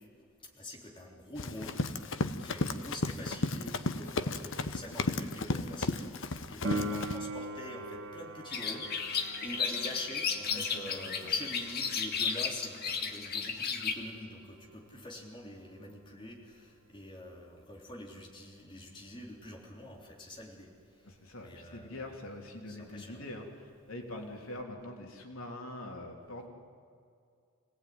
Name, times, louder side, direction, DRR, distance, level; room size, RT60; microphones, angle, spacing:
voice 1, 0.5-20.7 21.4-22.0 22.7-23.2, left 1 dB, 25° left, -1 dB, 3.6 m, -46 dB
Run, 1.4-7.2, left 2 dB, 65° left, 1.0 m, -34 dB
Piano, 6.6-17.0 24.6-24.7, right 1 dB, 65° right, 1.4 m, -43 dB
sound 1, 8.5-13.9, left 6 dB, 50° left, 1.8 m, -33 dB
voice 2, 10.5-11.5 21.0-26.5, left 1 dB, 90° left, 2 dB, 3.2 m, -44 dB
25.5 x 18.0 x 9.5 m, 2.3 s
head